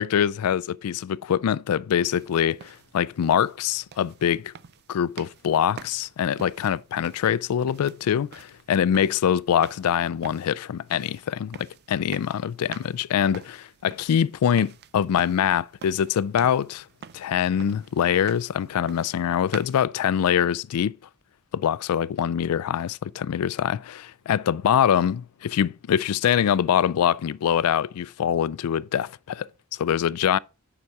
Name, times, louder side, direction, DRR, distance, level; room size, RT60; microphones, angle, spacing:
voice 1, 0.0-4.5 4.9-16.8 17.1-20.9 21.5-29.5 29.8-30.4, left 9 dB, 80° left, 0.3 m, -24 dB
sound 1, 2.1-19.8, right 7 dB, 50° right, 0.5 m, -47 dB
9.7 x 5.8 x 4.6 m
head